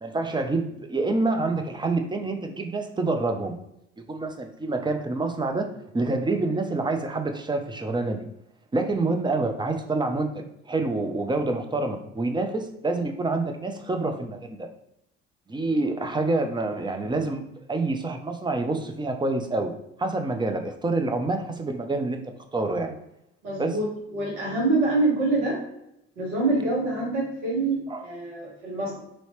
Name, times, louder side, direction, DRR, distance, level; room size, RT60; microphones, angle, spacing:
voice 1, 0.0-3.6 4.1-8.3 8.7-14.7 15.5-19.7 20.0-22.9 23.6-23.7 27.9-28.1, right 2 dB, 15° right, 5 dB, 0.5 m, -27 dB
voice 2, 23.4-23.9 24.1-25.6 26.2-29.0, right 2 dB, 80° right, -4 dB, 1.3 m, -25 dB
2.8 x 2.8 x 3.1 m, 0.82 s
hypercardioid pair, 45°, 37 cm